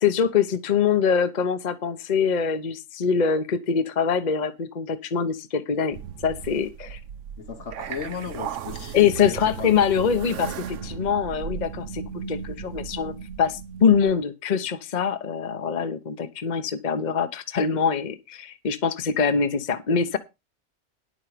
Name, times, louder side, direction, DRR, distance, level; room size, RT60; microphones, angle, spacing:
voice 1, 0.0-6.0 6.2-7.0 8.9-20.2, left 6 dB, 40° left, 1.0 m, -24 dB
sound 1, 5.9-14.2, right 7 dB, 90° right, 1.1 m, -36 dB
voice 2, 7.4-9.8, left 6 dB, 75° left, 1.8 m, -35 dB
10.5 x 7.7 x 5.0 m
omnidirectional pair, 1.2 m